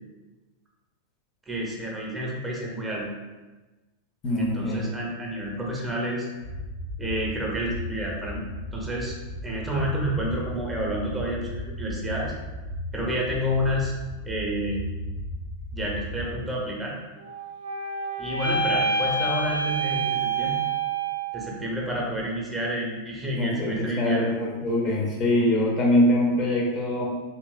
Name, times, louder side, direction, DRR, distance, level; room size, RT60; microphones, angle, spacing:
voice 1, 1.5-3.1 4.4-6.3 7.0-8.4 8.7-9.2 9.4-12.3 12.9-13.9 14.2-14.9 15.7-17.0 18.2-20.6 21.3-24.3, equal, 10° right, -3 dB, 0.6 m, -29 dB
voice 2, 4.2-4.8 23.4-27.1, left 1 dB, 35° left, -2 dB, 0.5 m, -23 dB
sound 1, 6.4-16.4, left 1 dB, 80° left, 0.6 m, -35 dB
sound 2, 17.2-21.5, right 3 dB, 80° right, 0.5 m, -27 dB
2.9 x 2.6 x 2.2 m, 1.2 s
figure-of-eight pair, 90°, 0 cm